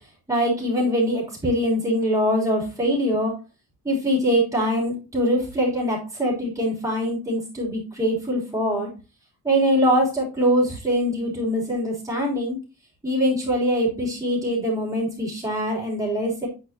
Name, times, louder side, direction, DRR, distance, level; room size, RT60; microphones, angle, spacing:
voice 1, 0.3-3.3 3.8-8.9 9.4-12.6 13.0-16.5, equal, 10° right, -4 dB, 3.3 m, -23 dB
8.6 x 4.7 x 2.7 m, 0.29 s
cardioid pair, 165°, 40 cm